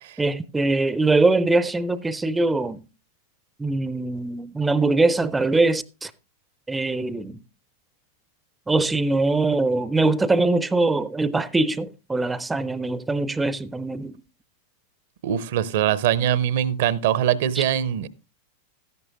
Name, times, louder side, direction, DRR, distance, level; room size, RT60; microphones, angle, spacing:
voice 1, 0.2-2.8 3.6-6.1 6.7-7.4 8.7-14.1 17.6-17.7, right 3 dB, 10° right, 0.4 m, -22 dB
voice 2, 15.2-18.1, right 10 dB, 55° right, 0.6 m, -22 dB
13.5 x 11.0 x 2.5 m
figure-of-eight pair, 90°, 0 cm